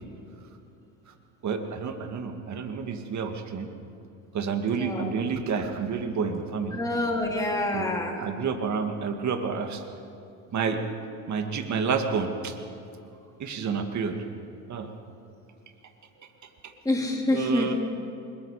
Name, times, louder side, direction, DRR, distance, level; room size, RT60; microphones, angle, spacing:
voice 1, 1.4-3.7 4.3-6.8 7.7-7.9 8.2-9.8 10.5-10.8 11.3-12.6 13.4-14.2 14.7-14.9 16.2-16.3 16.6-16.7 17.3-17.7, right 5 dB, 45° right, 5 dB, 2.3 m, -29 dB
voice 2, 4.8-5.1 6.7-8.2 16.8-17.7, left 2 dB, 10° left, -2 dB, 4.0 m, -27 dB
25.0 x 21.5 x 5.1 m, 2.7 s
supercardioid pair, 95°, 40 cm